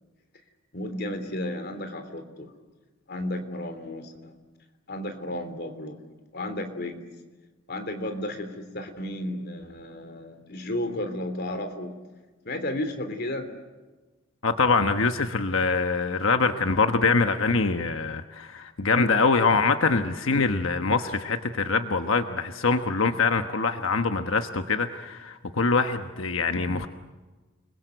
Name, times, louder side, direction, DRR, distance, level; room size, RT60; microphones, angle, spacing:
voice 1, 0.7-2.5 3.1-4.3 4.9-6.0 6.3-7.0 7.7-11.9 12.4-13.5, left 1 dB, 50° left, 7 dB, 3.4 m, -33 dB
voice 2, 14.4-26.9, left 4 dB, 85° left, 7 dB, 1.2 m, -24 dB
29.5 x 22.0 x 8.0 m, 1.2 s
head